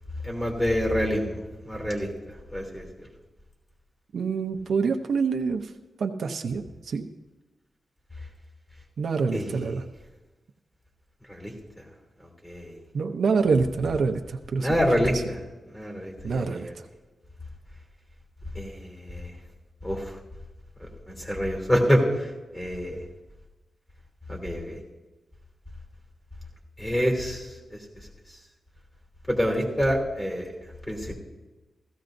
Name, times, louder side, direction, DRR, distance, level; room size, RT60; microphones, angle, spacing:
voice 1, 0.2-1.4 1.6-2.1 2.5-3.1 9.3-9.6 11.3-11.5 12.4-12.8 14.6-15.4 15.7-16.7 18.5-19.3 19.8-20.1 20.8-22.3 22.5-23.0 24.3-24.8 26.8-27.8 29.3-30.5 30.9-31.1, equal, 15° left, 0 dB, 3.1 m, -27 dB
voice 2, 4.1-5.7 6.0-7.1 9.0-9.8 12.9-15.2 16.2-16.9, right 5 dB, 70° right, 5 dB, 0.7 m, -26 dB
16.0 x 15.0 x 2.6 m, 1.2 s
wide cardioid pair, 115°, 0 cm